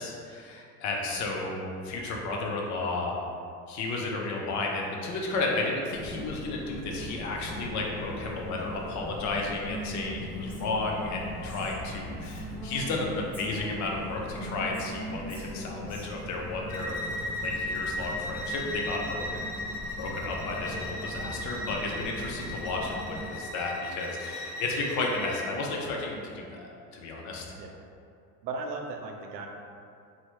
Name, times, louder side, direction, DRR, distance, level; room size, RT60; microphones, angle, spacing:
voice 1, 0.0-3.1 3.7-19.6 20.0-27.5, left 3 dB, 40° left, -1 dB, 0.5 m, -33 dB
sound 1, 5.9-23.2, equal, 20° right, 0.5 m, -41 dB
Female speech woman speaking, 9.6-13.0 13.3-16.0, equal, 10° left, 0.9 m, -42 dB
Bowed string instrument, 16.7-25.5, left 1 dB, 90° left, 0.6 m, -37 dB
voice 2, 28.4-29.5, right 3 dB, 85° right, 2 dB, 0.6 m, -36 dB
3.1 x 2.1 x 3.0 m, 2.5 s
hypercardioid pair, 95°, 48 cm